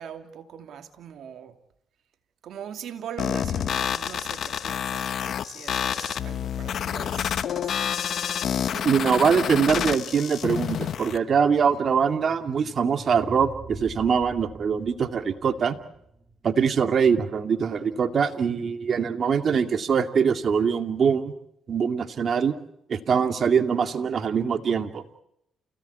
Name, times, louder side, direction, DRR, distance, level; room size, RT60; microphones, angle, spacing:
voice 1, 0.0-1.5 2.4-5.1 5.5-7.9 11.6-11.7, right 8 dB, 70° right, 7 dB, 2.6 m, -41 dB
sound 1, 3.2-11.2, left 8 dB, 65° left, 1.2 m, -28 dB
voice 2, 8.7-15.8 16.4-21.3 21.7-22.5 22.9-25.0, right 6 dB, 55° right, 7 dB, 2.3 m, -23 dB
sound 2, 12.2-17.1, right 3 dB, 30° right, 2.9 m, -45 dB
29.0 x 17.5 x 8.3 m, 0.77 s
cardioid pair, 75°, 0 cm